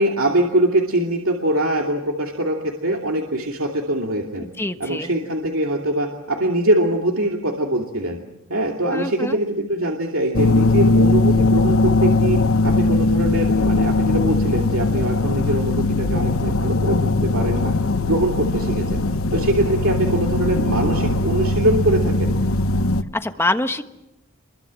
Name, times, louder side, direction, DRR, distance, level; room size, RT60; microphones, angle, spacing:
voice 1, 0.0-4.5 4.8-8.2 8.5-17.7 18.0-19.0 19.3-22.3, right 1 dB, 75° right, 1 dB, 2.7 m, -23 dB
voice 2, 4.4-5.1 8.9-9.4 23.2-23.8, left 2 dB, 10° left, 8 dB, 1.4 m, -25 dB
sound 1, 10.3-23.0, left 2 dB, 75° left, 1.0 m, -19 dB
28.0 x 23.0 x 7.7 m, 0.89 s
head